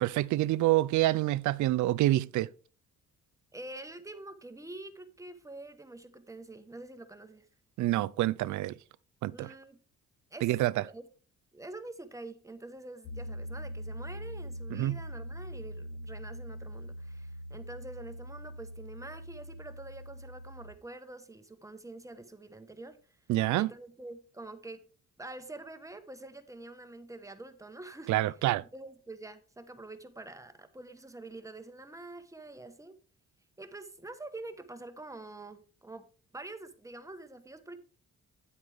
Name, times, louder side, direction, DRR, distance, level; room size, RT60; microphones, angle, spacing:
voice 1, 0.0-2.5 7.8-8.7 9.2-9.5 10.4-10.7 14.7-15.0 23.3-23.7 28.1-28.6, right 16 dB, 75° right, 0.5 m, -27 dB
voice 2, 3.5-7.5 9.3-9.8 10.3-11.1 11.5-23.0 23.5-24.8 25.2-28.3 28.6-33.0 33.6-36.1 36.3-37.8, right 2 dB, 10° right, 1.2 m, -46 dB
Piano, 13.0-20.7, equal, 90° left, 3.1 m, -42 dB
9.4 x 8.1 x 3.5 m
cardioid pair, 90°, 30 cm